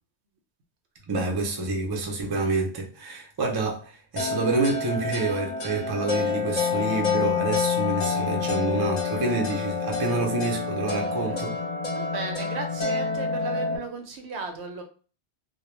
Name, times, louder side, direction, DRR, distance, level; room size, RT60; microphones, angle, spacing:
voice 1, 1.1-11.6, right 3 dB, 40° right, 0.3 m, -28 dB
sound 1, 4.2-13.8, left 5 dB, 40° left, 0.7 m, -28 dB
voice 2, 11.9-14.8, right 4 dB, 75° right, 0.8 m, -35 dB
2.2 x 2.1 x 3.0 m
omnidirectional pair, 1.2 m